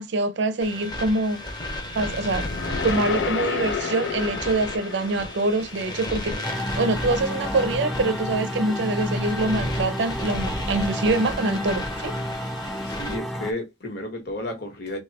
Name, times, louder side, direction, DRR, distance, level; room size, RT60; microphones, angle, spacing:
voice 1, 0.0-1.4 1.9-2.5 2.8-12.1, right 2 dB, 70° right, 0.5 m, -25 dB
sound 1, 0.6-13.2, left 1 dB, 25° left, 0.8 m, -34 dB
sound 2, 1.7-6.0, left 5 dB, 80° left, 0.6 m, -31 dB
sound 3, 6.4-13.5, equal, ahead, 0.4 m, -31 dB
voice 2, 12.8-15.0, left 1 dB, 60° left, 1.2 m, -32 dB
2.9 x 2.3 x 4.0 m
head